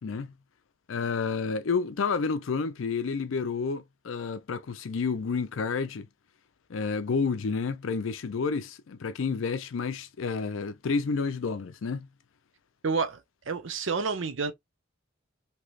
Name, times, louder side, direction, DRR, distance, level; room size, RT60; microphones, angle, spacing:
voice 1, 0.0-0.3 0.9-6.1 6.7-12.1, left 5 dB, 75° left, 0.5 m, -30 dB
voice 2, 12.8-13.2 13.5-14.5, right 4 dB, 70° right, 0.6 m, -29 dB
3.2 x 2.9 x 2.4 m
head